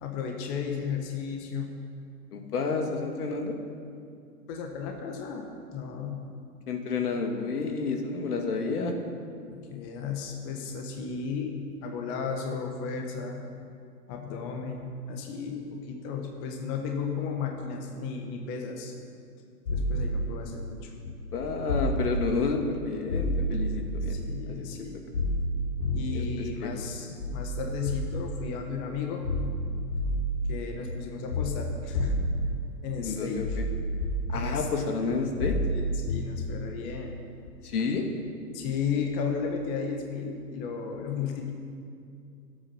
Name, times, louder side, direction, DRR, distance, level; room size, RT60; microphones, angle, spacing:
voice 1, 0.0-1.7 4.5-6.3 9.5-13.5 14.1-18.9 19.7-20.9 24.1-25.0 25.9-29.2 30.5-32.1 32.8-33.6 34.3-34.9 35.7-37.1 38.5-41.5, left 6 dB, 25° left, 2 dB, 1.3 m, -34 dB
voice 2, 2.3-3.6 6.7-8.9 21.1-24.2 24.5-24.7 26.1-26.7 33.0-33.7 34.3-35.6 37.6-38.0, left 4 dB, 65° left, 3 dB, 2.3 m, -30 dB
sound 1, 19.7-20.1 21.0-22.2 23.1-24.2 25.1-26.3 27.2-28.3 29.2-30.4 31.3-32.5 33.3-34.4 35.4-36.4 37.5-37.6, left 1 dB, 85° left, 3.5 m, -29 dB
23.5 x 8.8 x 5.6 m, 2.4 s
hypercardioid pair, 140°, 48 cm